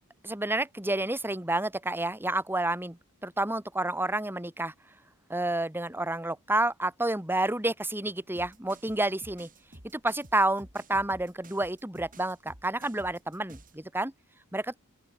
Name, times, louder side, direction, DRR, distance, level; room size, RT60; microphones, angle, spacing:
voice 1, 0.2-4.7 5.3-9.5 9.9-14.1 14.5-14.8, right 2 dB, 10° right, 1.9 m, -29 dB
sound 1, 8.4-13.8, right 1 dB, 40° right, 6.3 m, -51 dB
open air
head